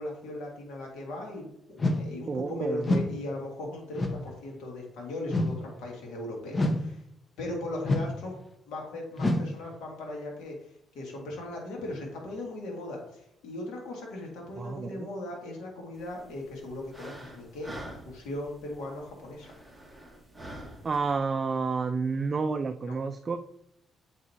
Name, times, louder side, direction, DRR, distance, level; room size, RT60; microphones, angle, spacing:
voice 1, 0.0-7.0 7.4-8.4 8.7-19.5 22.9-23.0, left 1 dB, 85° left, -1 dB, 1.8 m, -38 dB
sound 1, 1.8-2.1 2.8-3.2 3.9-4.3 5.3-5.7 6.5-6.9 7.8-8.2 9.2-9.5, left 1 dB, 30° left, 0.8 m, -27 dB
voice 2, 2.3-2.9 14.6-15.1 20.8-23.5, right 4 dB, 40° right, 7 dB, 0.3 m, -30 dB
sound 2, 16.0-21.2, right 1 dB, ahead, 1.6 m, -47 dB
7.4 x 4.6 x 2.8 m, 0.80 s
cardioid pair, 90°, 0 cm